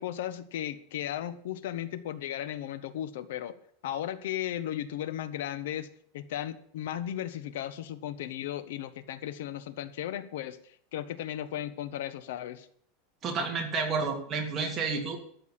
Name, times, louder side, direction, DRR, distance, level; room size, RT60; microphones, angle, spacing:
voice 1, 0.0-3.5 3.8-5.9 6.1-12.7, left 11 dB, 75° left, 13 dB, 1.2 m, -35 dB
voice 2, 13.2-15.2, right 4 dB, 20° right, 2 dB, 2.8 m, -30 dB
13.0 x 7.1 x 8.8 m, 0.63 s
supercardioid pair, 165°, 0 cm